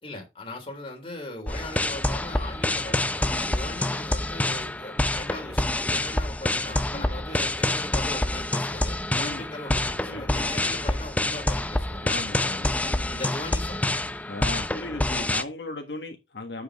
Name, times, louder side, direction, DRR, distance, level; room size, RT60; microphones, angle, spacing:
voice 1, 0.0-12.1 13.1-14.0, left 2 dB, 30° left, 3.5 m, -39 dB
sound 1, 1.5-15.4, left 1 dB, 10° left, 0.6 m, -27 dB
voice 2, 9.1-9.4 10.1-10.5 12.0-13.1 14.3-16.6, left 2 dB, 70° left, 1.5 m, -37 dB
8.4 x 8.0 x 3.6 m
head